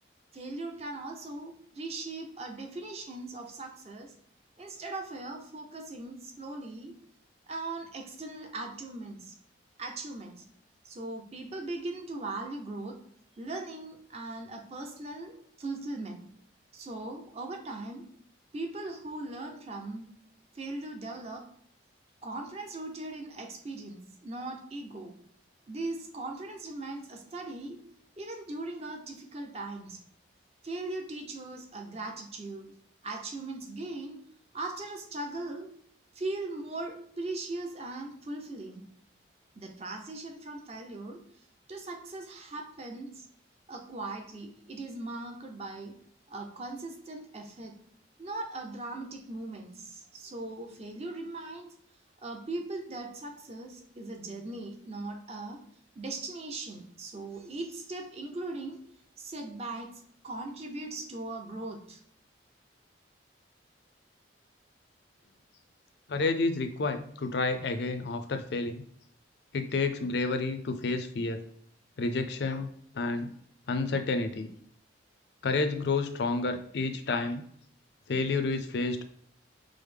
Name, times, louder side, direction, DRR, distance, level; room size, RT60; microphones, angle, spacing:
voice 1, 0.3-4.1 4.6-7.0 7.5-9.3 9.8-10.5 10.8-13.1 13.4-16.3 16.7-18.1 18.5-20.1 20.5-21.5 22.2-25.2 25.7-27.8 28.2-30.0 30.6-32.7 33.0-35.7 36.1-38.8 39.6-41.2 41.7-43.3 43.7-46.0 46.3-47.7 48.2-51.7 52.2-55.6 56.0-58.9 59.2-62.0, right 2 dB, 30° right, 0.6 m, -39 dB
voice 2, 66.1-68.8 69.5-71.4 72.0-72.7 72.9-73.3 73.7-74.5 75.4-77.4 78.1-79.0, left 3 dB, 60° left, 0.4 m, -30 dB
4.9 x 2.0 x 3.3 m
head